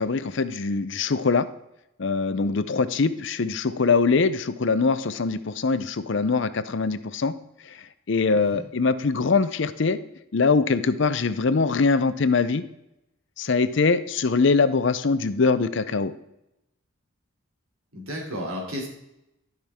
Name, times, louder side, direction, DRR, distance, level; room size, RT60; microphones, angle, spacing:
voice 1, 0.0-1.5 2.0-7.3 7.7-10.0 10.3-12.6 13.4-16.1, left 4 dB, 55° left, 13 dB, 0.5 m, -23 dB
voice 2, 17.9-18.9, equal, 85° right, -1 dB, 2.9 m, -33 dB
13.0 x 5.9 x 3.6 m, 0.84 s
head